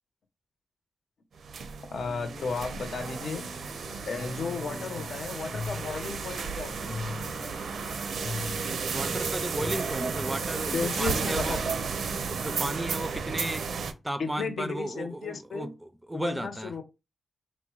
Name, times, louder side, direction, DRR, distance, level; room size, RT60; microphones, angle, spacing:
sound 1, 1.4-13.9, right 5 dB, 85° right, 0.5 m, -33 dB
voice 1, 1.9-3.4 4.1-7.0 10.7-11.8 14.2-15.7 16.1-16.8, left 4 dB, 70° left, 0.8 m, -34 dB
sound 2, 1.9-10.2, left 3 dB, 35° left, 0.7 m, -42 dB
voice 2, 8.9-11.6 12.2-16.7, right 1 dB, 10° right, 0.4 m, -34 dB
4.1 x 2.1 x 4.5 m
wide cardioid pair, 170°, 0 cm